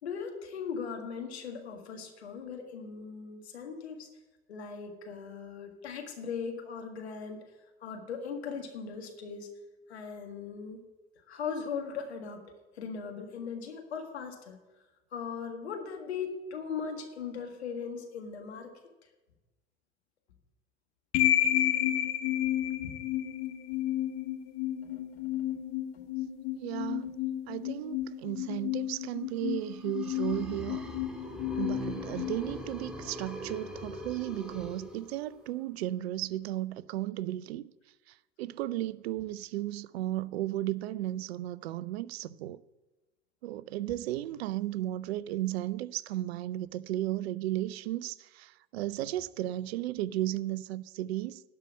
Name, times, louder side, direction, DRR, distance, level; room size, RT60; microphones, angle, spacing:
voice 1, 0.0-4.1 4.5-7.4 7.8-9.5 9.9-10.8 11.3-12.4 12.7-14.6 15.1-18.7 22.8-23.0 24.8-25.5, left 6 dB, 85° left, 1.8 m, -39 dB
sound 1, 21.1-33.2, left 12 dB, 60° left, 1.3 m, -32 dB
voice 2, 26.6-27.1 27.5-30.8 31.6-37.7 38.1-42.6 43.4-51.4, right 14 dB, 75° right, 0.5 m, -34 dB
sound 2, 29.6-35.5, equal, 5° right, 1.9 m, -42 dB
11.5 x 5.6 x 8.6 m
hypercardioid pair, 75°, 32 cm